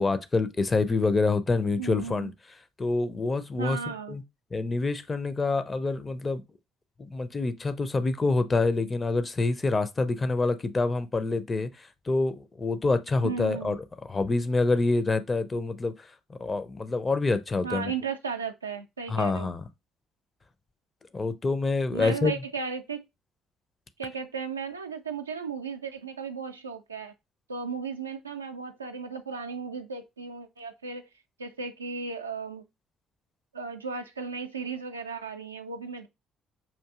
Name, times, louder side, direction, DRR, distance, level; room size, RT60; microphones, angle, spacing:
voice 1, 0.0-2.3 2.8-3.8 4.1-4.2 4.5-6.4 7.0-13.8 14.1-15.9 16.3-17.9 19.1-19.7 21.1-22.4, left 3 dB, 25° left, 0.5 m, -26 dB
voice 2, 1.8-2.3 3.6-4.2 13.2-13.8 17.6-19.5 21.9-23.0 24.0-27.1 27.5-31.1 31.4-32.6 33.5-36.1, right 5 dB, 85° right, 0.3 m, -35 dB
5.6 x 2.6 x 2.4 m
figure-of-eight pair, 50°, 0 cm